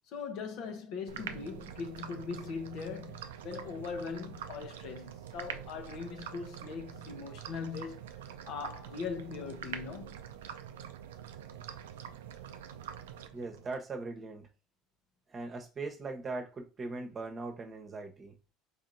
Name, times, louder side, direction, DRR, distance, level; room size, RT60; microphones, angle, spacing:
voice 1, 0.1-10.2, left 5 dB, 65° left, 0.8 m, -40 dB
sound 1, 1.1-13.8, right 9 dB, 90° right, 0.4 m, -45 dB
voice 2, 13.3-14.5 15.3-18.3, right 3 dB, 35° right, 0.9 m, -40 dB
4.3 x 2.8 x 2.6 m
supercardioid pair, 85°, 0 cm